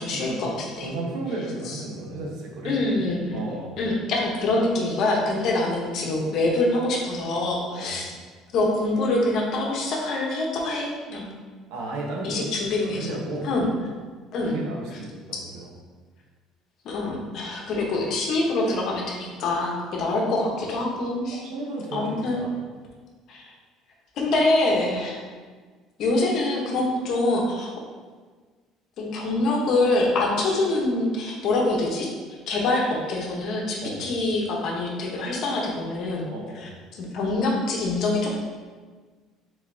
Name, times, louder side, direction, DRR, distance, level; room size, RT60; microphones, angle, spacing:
voice 1, 0.0-0.9 1.7-1.8 2.6-3.4 3.8-8.0 8.5-11.3 12.2-13.1 13.4-13.7 14.3-14.5 16.8-21.4 21.9-22.5 23.3-23.4 24.2-25.2 26.0-27.7 29.0-32.1 32.5-36.2 36.6-36.7 37.0-38.4, left 2 dB, 55° left, -1 dB, 0.9 m, -25 dB
voice 2, 0.8-2.8 3.3-3.8 7.8-8.0 11.7-12.4 12.8-13.5 14.4-15.7 21.4-22.5 33.8-34.0 36.3-36.7, right 2 dB, 80° right, -1 dB, 1.0 m, -33 dB
4.9 x 3.9 x 2.7 m, 1.5 s
cardioid pair, 130°, 0 cm